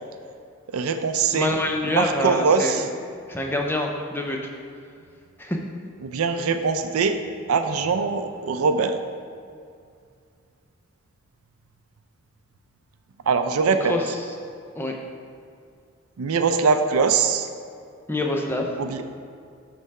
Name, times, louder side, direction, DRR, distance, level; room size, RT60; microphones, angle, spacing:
voice 1, 0.7-1.5 1.8-2.9 6.0-7.2 7.5-9.0 13.3-13.9 16.2-17.5 18.8-19.0, right 5 dB, 85° right, 8 dB, 0.4 m, -22 dB
voice 2, 1.3-2.9 3.3-4.4 5.4-5.6 13.8-14.0 14.8-14.9 18.1-18.7, left 1 dB, 10° left, 1 dB, 0.5 m, -26 dB
8.2 x 3.3 x 5.4 m, 2.3 s
head